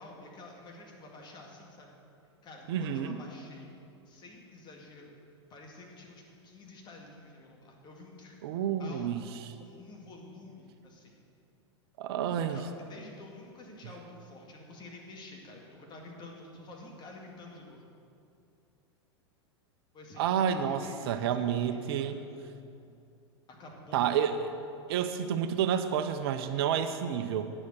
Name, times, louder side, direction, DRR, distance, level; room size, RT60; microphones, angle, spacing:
voice 1, 0.0-2.0 2.4-3.7 4.1-5.1 5.5-9.1 9.6-11.2 12.2-17.8 19.9-22.2 23.5-24.3, left 2 dB, 30° left, -1 dB, 2.2 m, -49 dB
voice 2, 2.7-3.2 8.4-9.4 12.0-12.6 20.2-22.2 23.9-24.4 24.9-27.5, right 8 dB, 55° right, 9 dB, 0.6 m, -29 dB
9.7 x 7.2 x 6.5 m, 2.5 s
hypercardioid pair, 100°, 15 cm